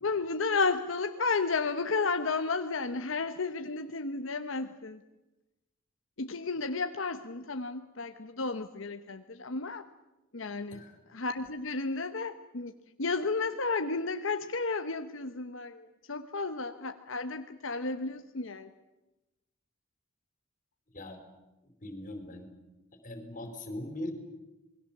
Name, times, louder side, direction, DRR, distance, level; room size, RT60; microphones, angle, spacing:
voice 1, 0.0-5.0 6.2-9.8 10.3-10.8 11.1-12.7 13.0-18.7, left 4 dB, 80° left, 7 dB, 1.1 m, -32 dB
voice 2, 21.8-22.5 23.0-24.1, left 1 dB, 40° left, 7 dB, 4.2 m, -40 dB
27.5 x 21.0 x 7.3 m, 1.0 s
head